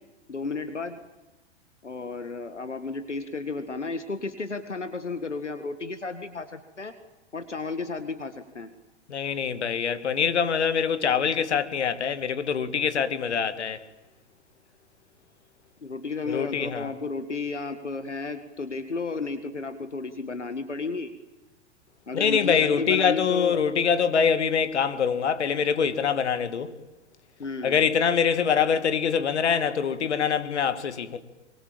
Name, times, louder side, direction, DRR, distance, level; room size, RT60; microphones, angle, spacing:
voice 1, 0.3-1.0 1.8-6.9 7.3-8.7 15.8-21.1 22.1-23.6 27.4-27.8, left 4 dB, 90° left, 1.9 m, -33 dB
voice 2, 9.1-13.8 16.3-16.9 22.1-26.7 27.6-31.2, left 7 dB, 70° left, 2.3 m, -24 dB
25.0 x 24.5 x 8.9 m
figure-of-eight pair, 100°, 35 cm